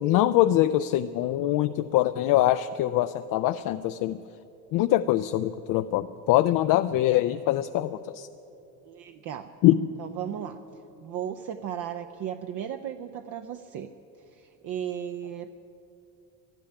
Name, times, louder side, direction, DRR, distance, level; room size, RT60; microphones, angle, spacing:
voice 1, 0.0-4.2 4.7-8.3 9.6-9.8, left 14 dB, 55° left, 10 dB, 0.5 m, -23 dB
voice 2, 8.8-9.5 10.0-10.6 11.0-13.9 14.3-15.5, right 9 dB, 55° right, 6 dB, 0.7 m, -35 dB
12.0 x 11.5 x 10.0 m, 2.9 s
supercardioid pair, 105°, 39 cm